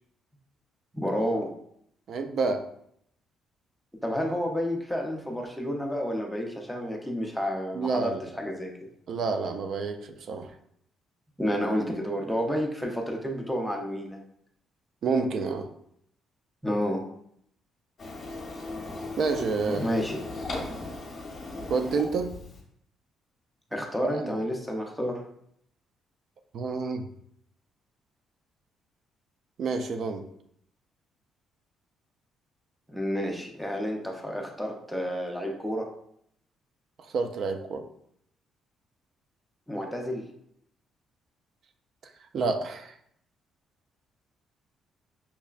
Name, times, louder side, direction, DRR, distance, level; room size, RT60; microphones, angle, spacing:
voice 1, 0.9-1.5 4.0-8.9 11.4-14.2 16.6-17.0 19.7-20.2 23.7-25.2 32.9-35.9 39.7-40.2, equal, ahead, 0 dB, 0.6 m, -30 dB
voice 2, 2.1-2.6 7.7-8.2 9.1-10.5 15.0-15.7 19.2-19.8 21.7-22.3 24.0-24.3 26.5-27.1 29.6-30.2 37.0-37.8 42.3-42.9, right 4 dB, 55° right, 7 dB, 0.3 m, -28 dB
Printer, 18.0-22.6, left 2 dB, 35° left, 0.9 m, -38 dB
5.6 x 2.1 x 2.3 m, 0.71 s
cardioid pair, 130°, 0 cm